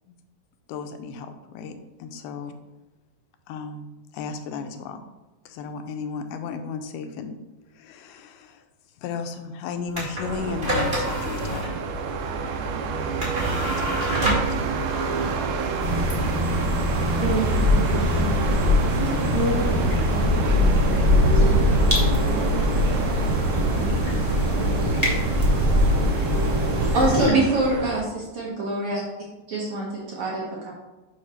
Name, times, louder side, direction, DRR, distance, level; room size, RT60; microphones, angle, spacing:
voice 1, 0.7-2.6 3.5-5.0 5.5-7.4 7.7-8.6 9.0-11.7 13.8-13.9 14.3-14.7, left 5 dB, 85° left, 7 dB, 2.5 m, -34 dB
sound 1, 9.9-18.4, right 1 dB, 25° right, 1.3 m, -30 dB
sound 2, 10.2-28.0, right 4 dB, 85° right, 2.5 m, -29 dB
sound 3, 15.8-27.3, left 1 dB, 20° left, 0.5 m, -22 dB
voice 2, 17.2-23.2 23.6-24.9, right 2 dB, 50° right, -8 dB, 1.3 m, -31 dB
voice 3, 26.8-28.0 28.3-29.0 29.5-30.7, right 2 dB, 70° right, -5 dB, 1.3 m, -24 dB
7.9 x 2.9 x 5.6 m, 1.1 s
omnidirectional pair, 4.3 m